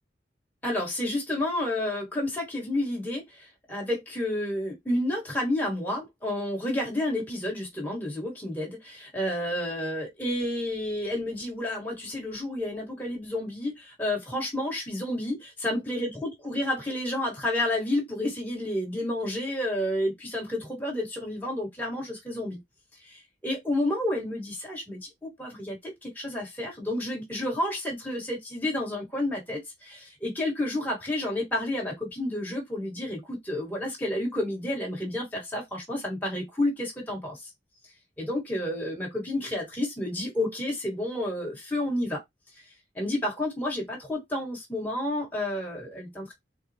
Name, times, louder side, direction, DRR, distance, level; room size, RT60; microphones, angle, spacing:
voice 1, 0.6-22.6 23.0-37.5 38.2-42.2 42.9-46.3, left 1 dB, 10° left, 1.3 m, -30 dB
3.7 x 2.0 x 2.7 m
head